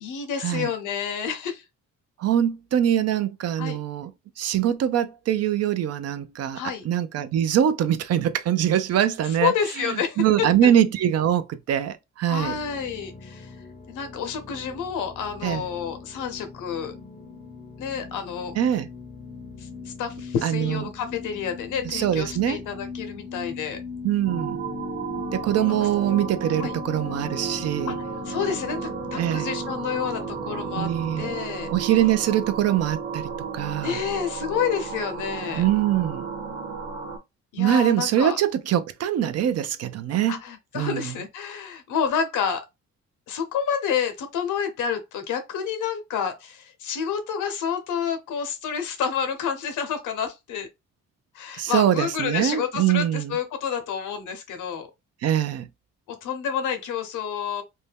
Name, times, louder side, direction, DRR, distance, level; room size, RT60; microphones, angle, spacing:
voice 1, 0.0-1.6 3.6-3.8 6.6-6.9 9.4-10.7 12.3-13.6 13.9-16.9 17.8-18.6 19.6-23.8 25.7-25.9 26.6-26.7 27.9-28.0 28.3-30.9 31.2-31.7 33.8-35.6 37.5-38.4 40.3-42.6 43.3-50.7 51.3-54.9 56.1-57.6, left 7 dB, 80° left, 0.8 m, -29 dB
voice 2, 2.2-4.1 4.4-6.6 6.8-9.5 9.9-12.6 15.4-15.6 18.6-18.9 20.4-20.8 21.8-22.6 24.0-24.6 25.3-27.9 29.1-29.5 30.8-31.3 31.7-33.3 33.5-34.0 35.5-36.3 37.6-40.4 40.7-41.1 51.5-53.4 55.2-55.7, right 10 dB, 55° right, 0.5 m, -23 dB
sound 1, 12.4-31.4, left 5 dB, 25° left, 0.6 m, -40 dB
sound 2, 24.2-37.2, right 5 dB, 35° right, 1.0 m, -33 dB
2.6 x 2.2 x 3.4 m
cardioid pair, 90°, 30 cm